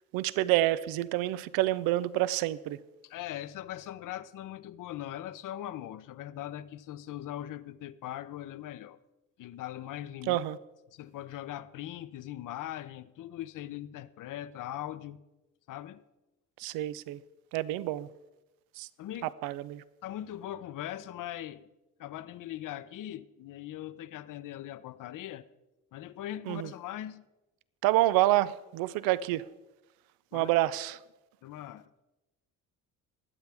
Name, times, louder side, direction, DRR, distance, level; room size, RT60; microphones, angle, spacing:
voice 1, 0.1-2.8 10.3-10.6 16.6-17.2 17.5-18.1 18.8-18.9 19.4-19.8 26.5-26.7 27.8-29.5 30.3-31.0, right 15 dB, 90° right, 0.5 m, -28 dB
voice 2, 3.0-9.0 9.4-10.4 10.9-15.2 15.7-16.0 19.0-19.5 20.0-21.7 22.0-25.5 25.9-27.2 30.3-30.5 31.4-31.9, left 12 dB, 65° left, 0.7 m, -40 dB
20.5 x 8.1 x 3.5 m
supercardioid pair, 70°, 34 cm